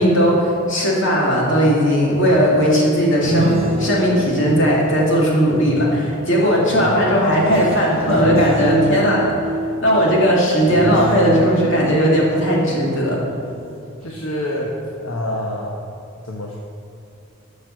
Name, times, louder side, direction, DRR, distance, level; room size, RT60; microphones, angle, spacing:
voice 1, 0.0-9.2 9.8-13.2, equal, 60° left, -3 dB, 2.5 m, -17 dB
sound 1, 3.2-5.9 6.7-13.6 14.0-14.3, right 2 dB, 30° right, 1.2 m, -25 dB
voice 2, 14.0-14.7 15.0-15.7 16.2-16.6, left 1 dB, 75° left, -2 dB, 1.1 m, -26 dB
12.0 x 5.6 x 6.5 m, 2.5 s
head